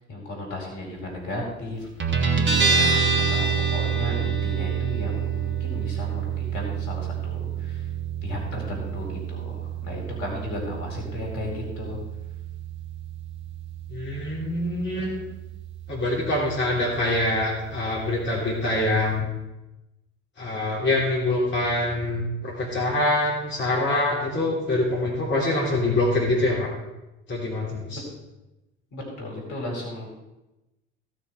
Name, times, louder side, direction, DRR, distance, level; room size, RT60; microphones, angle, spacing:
voice 1, 0.1-1.9 2.5-3.4 3.7-7.8 8.2-12.0 27.9-28.0 28.9-30.1, left 1 dB, 55° left, 0 dB, 4.2 m, -35 dB
Guitar, 2.0-19.2, right 6 dB, 35° right, 2.1 m, -28 dB
voice 2, 13.9-15.2 15.9-19.3 20.4-26.7 27.3-28.0, left 2 dB, 30° left, -4 dB, 3.3 m, -25 dB
16.0 x 6.3 x 4.8 m, 1.0 s
figure-of-eight pair, 60°, 35 cm